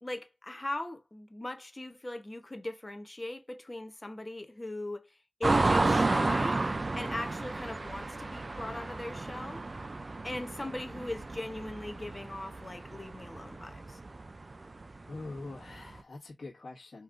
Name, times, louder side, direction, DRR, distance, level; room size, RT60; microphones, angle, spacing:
voice 1, 0.0-6.6 6.9-9.6 10.2-14.0, left 1 dB, 25° left, 0.8 m, -39 dB
sound 1, 5.4-16.0, right 2 dB, 40° right, 0.3 m, -32 dB
voice 2, 15.1-17.0, left 2 dB, 60° left, 1.4 m, -44 dB
5.0 x 3.1 x 2.5 m
cardioid pair, 60°, 0 cm